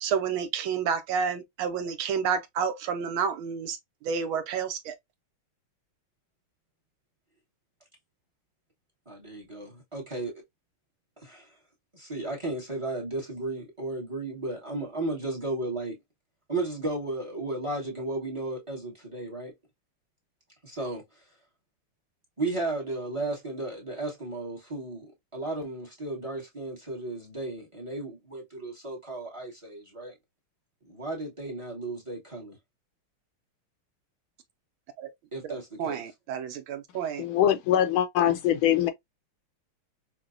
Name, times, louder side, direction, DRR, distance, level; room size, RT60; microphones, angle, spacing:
voice 1, 0.0-3.8 4.0-4.9 35.0-35.1 35.4-37.2, right 6 dB, 75° right, 1.3 m, -30 dB
voice 2, 9.1-10.4 11.2-11.5 11.9-16.0 16.5-19.5 20.6-21.0 22.4-30.1 30.8-32.6 35.3-36.0, right 2 dB, 20° right, 0.8 m, -34 dB
voice 3, 37.2-38.9, left 11 dB, 75° left, 1.4 m, -23 dB
5.8 x 2.2 x 2.4 m
omnidirectional pair, 2.4 m